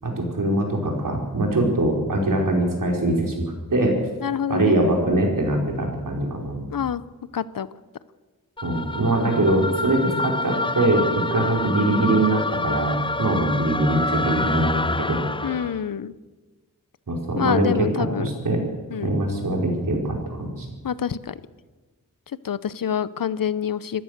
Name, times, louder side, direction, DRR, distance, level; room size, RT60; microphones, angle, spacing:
voice 1, 0.0-3.5 3.7-4.0 4.5-6.6 8.6-15.3 17.1-18.6 19.0-20.7, right 1 dB, 70° right, 1 dB, 5.2 m, -22 dB
voice 2, 4.2-4.8 6.7-7.0 7.3-7.7 15.4-16.1 17.4-18.3 18.9-19.1 20.8-21.4 22.4-24.0, left 8 dB, 75° left, 16 dB, 0.8 m, -26 dB
sound 1, 8.6-15.8, left 2 dB, 15° left, 0.6 m, -28 dB
26.0 x 15.0 x 6.7 m, 1.3 s
wide cardioid pair, 85°, 34 cm